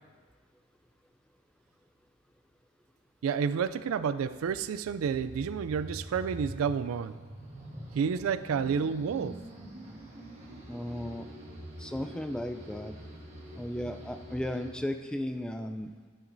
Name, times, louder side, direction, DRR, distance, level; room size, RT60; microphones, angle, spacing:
voice 1, 3.2-7.1 8.0-9.4, right 6 dB, 85° right, 14 dB, 0.3 m, -30 dB
sound 1, 3.7-14.7, right 1 dB, 35° right, 1.3 m, -45 dB
voice 2, 10.7-11.3 11.8-12.9 13.6-15.9, left 1 dB, 5° left, 7 dB, 0.3 m, -35 dB
11.0 x 9.0 x 2.6 m, 1.5 s
head